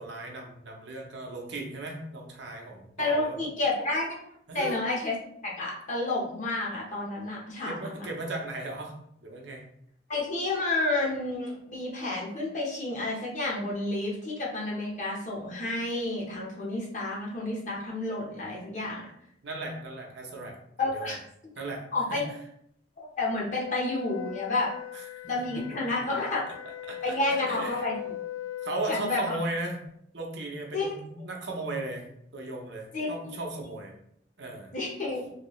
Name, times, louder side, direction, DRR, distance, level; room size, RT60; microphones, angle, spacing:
voice 1, 0.0-3.4 4.5-4.8 7.6-8.9 9.2-9.6 19.4-20.6 20.9-21.2 21.6-21.8 22.1-22.2 24.9-25.8 26.9-27.8 28.6-29.8 30.1-33.9 34.4-34.7, right 2 dB, 70° right, 0 dB, 0.7 m, -36 dB
voice 2, 3.0-4.1 4.5-5.1 5.4-8.1 10.1-19.0 20.8-21.2 21.9-22.3 23.0-24.7 25.3-26.4 27.0-28.1 28.9-29.4 30.7-30.9 32.9-33.4 34.7-35.3, left 2 dB, 40° left, -3 dB, 0.9 m, -30 dB
Wind instrument woodwind instrument, 23.5-29.0, left 12 dB, 85° left, 0.3 m, -39 dB
3.2 x 2.7 x 3.1 m, 0.72 s
head